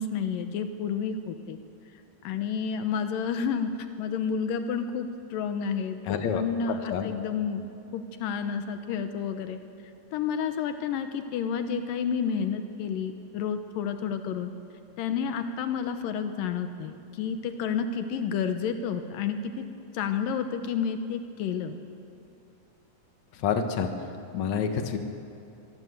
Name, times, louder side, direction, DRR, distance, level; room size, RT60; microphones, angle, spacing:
voice 1, 0.0-1.6 2.2-3.7 4.0-9.6 10.1-14.5 15.0-19.7 19.9-21.8, left 6 dB, 85° left, 8 dB, 2.7 m, -30 dB
voice 2, 6.1-6.4 6.9-7.1 23.4-23.9 24.3-25.0, left 7 dB, 60° left, 6 dB, 2.7 m, -27 dB
24.0 x 20.0 x 8.0 m, 2.7 s
omnidirectional pair, 3.9 m